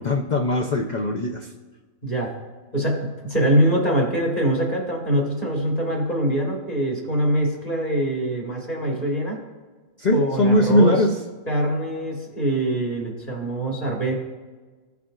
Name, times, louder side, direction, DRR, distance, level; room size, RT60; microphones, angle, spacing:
voice 1, 0.0-1.5 10.0-11.2, left 1 dB, 75° left, 1 dB, 0.4 m, -20 dB
voice 2, 2.7-9.4 10.1-11.0 11.5-14.1, right 1 dB, 25° left, -1 dB, 1.6 m, -23 dB
15.5 x 5.8 x 2.4 m, 1.4 s
omnidirectional pair, 1.6 m